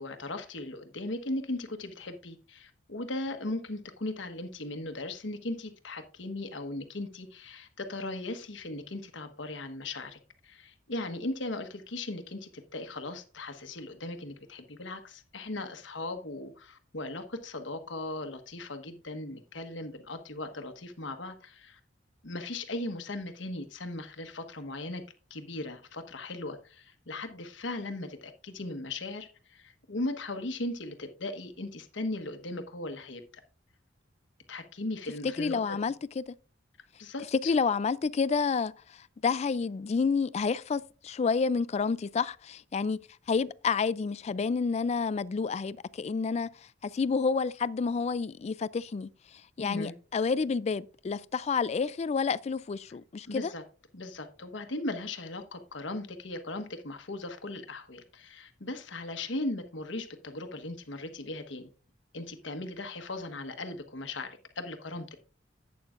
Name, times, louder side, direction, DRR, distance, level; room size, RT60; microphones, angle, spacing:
voice 1, 0.0-21.8 22.2-25.0 25.3-33.2 34.5-35.8 37.0-37.5 49.6-49.9 53.3-53.6 53.9-61.7 62.1-65.1, left 2 dB, 80° left, 1.2 m, -38 dB
voice 2, 35.4-36.3 37.3-38.7 39.2-43.0 43.3-46.5 46.8-49.1 49.6-53.5, left 5 dB, 35° left, 0.3 m, -29 dB
11.5 x 8.5 x 2.5 m
head